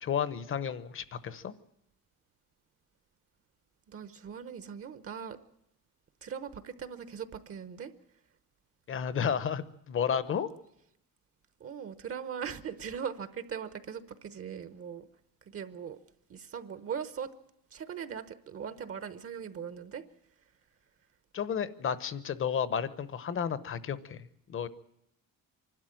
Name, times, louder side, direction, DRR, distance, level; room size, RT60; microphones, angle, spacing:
voice 1, 0.0-1.5 8.9-10.5 21.3-24.7, left 7 dB, 40° left, 15 dB, 1.0 m, -32 dB
voice 2, 3.9-5.4 6.2-7.9 11.6-15.1 15.4-16.0 16.3-17.3 17.7-20.0, right 7 dB, 45° right, 12 dB, 1.0 m, -40 dB
25.5 x 12.5 x 9.0 m, 0.81 s
cardioid pair, 165°, 33 cm